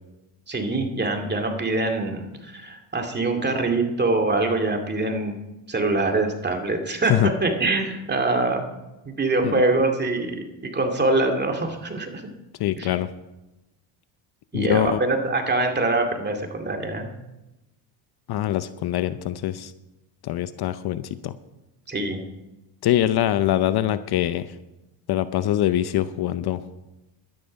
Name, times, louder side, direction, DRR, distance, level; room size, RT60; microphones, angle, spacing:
voice 1, 0.5-5.4 5.7-8.6 9.1-10.4 10.7-12.2 12.8-13.0 14.5-17.1 21.9-22.2, right 2 dB, 20° right, 3 dB, 2.3 m, -24 dB
voice 2, 12.6-13.1 14.5-15.0 18.3-19.7 20.2-21.4 22.8-24.5 25.1-26.6, left 12 dB, 55° left, 13 dB, 0.7 m, -23 dB
12.0 x 10.5 x 5.3 m, 0.99 s
cardioid pair, 95°, 46 cm